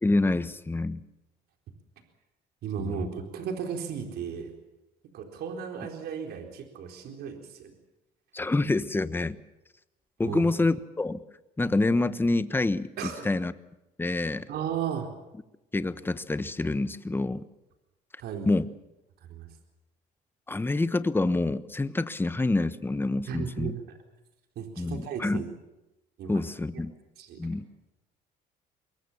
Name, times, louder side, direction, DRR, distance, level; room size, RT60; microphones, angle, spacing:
voice 1, 0.0-1.0 2.8-2.9 8.3-9.4 10.2-11.2 11.6-13.5 14.0-14.5 15.7-17.4 18.4-18.7 20.5-23.7 24.8-25.4 26.3-26.9 27.4-27.7, left 2 dB, 10° left, 13 dB, 1.2 m, -27 dB
voice 2, 2.6-4.5 5.1-7.7 10.2-10.5 13.0-13.3 14.5-15.1 18.2-18.5 19.2-19.5 23.3-24.0 24.6-25.5 26.2-26.4 27.2-27.5, right 7 dB, 70° right, 4 dB, 4.1 m, -35 dB
24.0 x 22.0 x 7.2 m, 0.98 s
cardioid pair, 110°, 17 cm